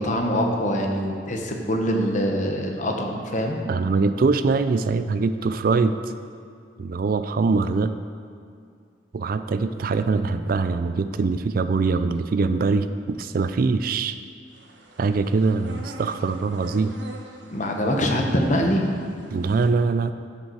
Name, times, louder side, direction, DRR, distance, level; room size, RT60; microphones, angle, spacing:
voice 1, 0.0-3.6 17.5-18.9, equal, 45° left, 2 dB, 1.1 m, -24 dB
voice 2, 3.7-6.0 6.8-7.9 9.1-14.2 15.0-16.9 19.3-20.1, right 4 dB, 55° right, 11 dB, 0.4 m, -23 dB
sound 1, 14.5-19.7, right 2 dB, 85° right, 1.1 m, -44 dB
10.5 x 6.8 x 4.7 m, 2.3 s
head